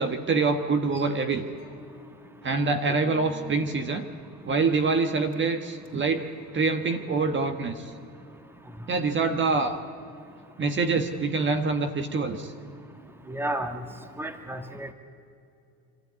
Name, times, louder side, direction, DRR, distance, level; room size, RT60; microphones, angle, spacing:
voice 1, 0.0-1.4 2.4-4.1 4.4-6.3 6.5-7.9 8.9-9.7 10.6-12.5, right 4 dB, 30° right, 7 dB, 1.3 m, -25 dB
sound 1, 1.0-4.6 5.1-5.3 5.8-6.1 6.9-7.2, equal, 55° left, 2.8 m, -50 dB
voice 2, 13.3-13.8 14.2-14.9, right 1 dB, 5° right, 8 dB, 1.6 m, -32 dB
26.5 x 13.5 x 9.6 m, 2.6 s
cardioid pair, 115°, 35 cm